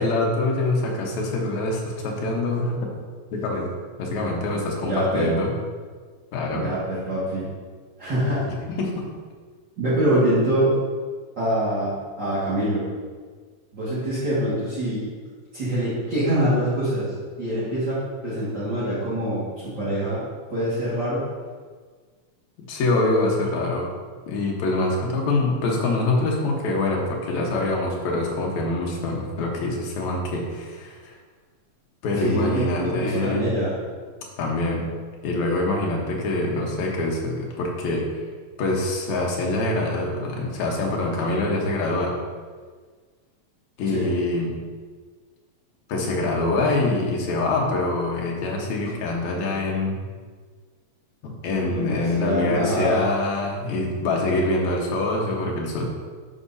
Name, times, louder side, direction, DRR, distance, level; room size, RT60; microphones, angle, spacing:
voice 1, 0.0-2.9 3.3-3.7 4.0-5.5 6.3-6.7 8.8-9.1 22.7-23.9 24.3-31.2 32.0-33.4 34.4-34.9 35.2-38.0 38.6-42.1 43.8-44.5 45.9-50.0 51.2-55.9, left 2 dB, 75° left, -1 dB, 2.4 m, -25 dB
voice 2, 4.8-5.3 6.5-7.5 8.0-8.4 9.8-10.7 11.4-12.9 13.7-15.0 15.5-17.1 17.4-20.2 20.5-21.2 32.2-33.7 43.9-44.1 51.6-53.1, right 1 dB, 40° right, -11 dB, 2.1 m, -24 dB
10.0 x 5.1 x 2.7 m, 1.5 s
omnidirectional pair, 3.3 m